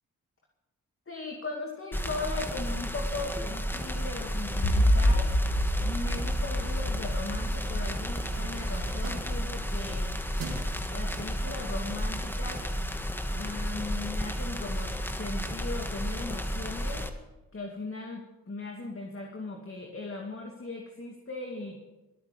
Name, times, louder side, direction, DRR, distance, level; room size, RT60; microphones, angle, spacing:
voice 1, 1.1-5.3 5.8-10.1 10.9-12.7 13.3-17.1 17.5-21.8, left 3 dB, 40° left, 1 dB, 2.5 m, -38 dB
sound 1, 1.9-17.1, equal, 5° left, 1.6 m, -33 dB
sound 2, 4.6-11.8, equal, 65° left, 4.3 m, -29 dB
sound 3, 7.5-12.6, right 3 dB, 80° right, 2.8 m, -46 dB
22.0 x 8.7 x 5.3 m, 1.0 s
supercardioid pair, 45°, 34 cm